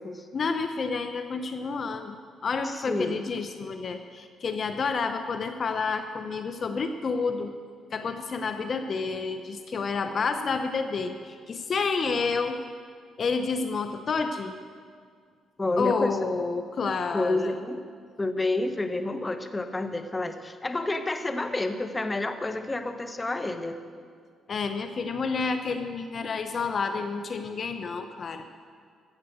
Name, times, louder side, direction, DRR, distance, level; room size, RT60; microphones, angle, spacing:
voice 1, 0.3-7.5 7.9-12.6 13.2-14.6 15.8-17.5 24.5-28.5, left 4 dB, 50° left, 8 dB, 0.8 m, -29 dB
voice 2, 2.6-3.2 15.6-16.2 17.1-17.9 18.2-23.8, left 2 dB, 20° left, 8 dB, 1.0 m, -29 dB
14.0 x 8.2 x 8.0 m, 2.1 s
cardioid pair, 90°, 0 cm